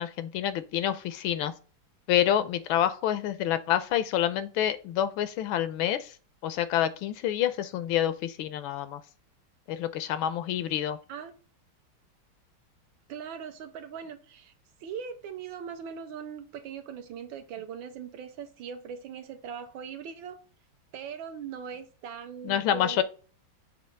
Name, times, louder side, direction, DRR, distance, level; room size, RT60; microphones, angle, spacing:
voice 1, 0.0-1.5 2.1-6.1 6.4-9.0 9.7-11.0 22.4-23.0, left 11 dB, 75° left, 1.3 m, -27 dB
voice 2, 13.1-14.5 14.8-20.4 20.9-23.0, right 7 dB, 70° right, 1.5 m, -40 dB
6.7 x 2.7 x 5.1 m
omnidirectional pair, 2.3 m